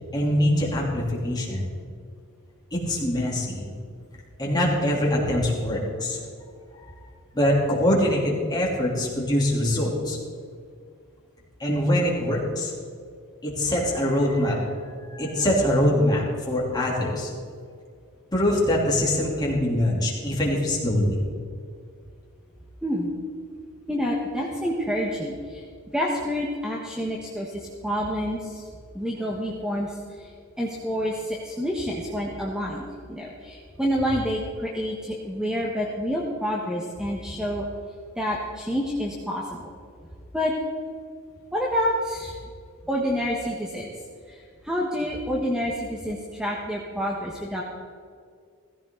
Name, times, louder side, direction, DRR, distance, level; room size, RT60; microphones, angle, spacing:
voice 1, 0.1-1.7 2.7-3.7 4.4-6.2 6.8-6.9 7.3-10.2 11.6-12.7 13.4-14.6 15.1-17.3 18.3-21.2, left 1 dB, 20° left, -4 dB, 3.3 m, -23 dB
voice 2, 23.9-25.6 25.9-28.7 28.9-30.3 30.6-37.7 38.2-39.7 40.3-40.5 41.5-42.4 42.9-43.9 44.3-47.6, equal, 5° right, -3 dB, 1.3 m, -28 dB
16.5 x 15.0 x 3.9 m, 2.2 s
head